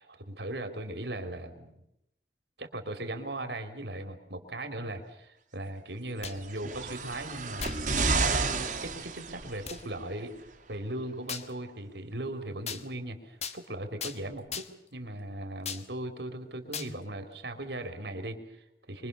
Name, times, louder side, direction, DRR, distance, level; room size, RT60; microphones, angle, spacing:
voice 1, 0.0-1.7 2.6-8.1 8.8-14.7 14.9-19.1, right 1 dB, 75° right, 7 dB, 3.7 m, -38 dB
sound 1, 6.0-6.5 7.6-7.9 8.5-8.6 9.7-9.8 11.3-11.5 12.7-12.8 13.4-13.6 14.0-14.2 14.5-14.9 15.7-15.9 16.7-16.9, left 7 dB, 40° left, 1.7 m, -37 dB
sound 2, 6.4-9.8 10.7-10.8, right 4 dB, 45° right, 2.6 m, -30 dB
25.5 x 23.5 x 7.0 m, 0.82 s
head